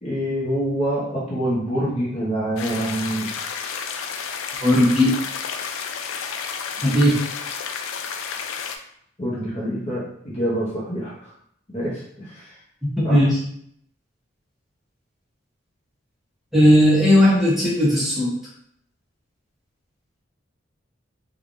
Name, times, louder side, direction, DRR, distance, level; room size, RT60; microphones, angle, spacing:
voice 1, 0.0-3.3 9.2-11.3 11.7-12.6 13.0-13.2, right 1 dB, 30° left, -6 dB, 0.8 m, -26 dB
sound 1, 2.6-8.8, left 6 dB, 90° left, 0.3 m, -31 dB
voice 2, 4.6-5.1 6.8-7.2 13.1-13.4 16.5-18.3, left 1 dB, ahead, -9 dB, 0.8 m, -16 dB
3.1 x 2.3 x 2.5 m, 0.69 s
head